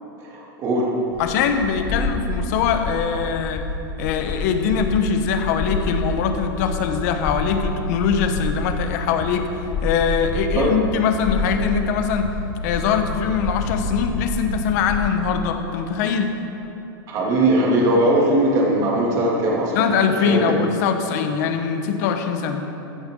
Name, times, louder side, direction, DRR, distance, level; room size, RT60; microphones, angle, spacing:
voice 1, 0.3-0.9 10.5-10.7 17.1-19.7 20.2-20.4, right 1 dB, 30° right, -4 dB, 3.0 m, -19 dB
sound 1, 1.1-15.2, left 2 dB, 20° left, 1.4 m, -28 dB
voice 2, 1.2-3.7 4.0-12.3 12.6-16.3 19.7-22.6, left 6 dB, 45° left, 6 dB, 1.3 m, -22 dB
15.0 x 14.0 x 4.0 m, 2.9 s
supercardioid pair, 160°, 12 cm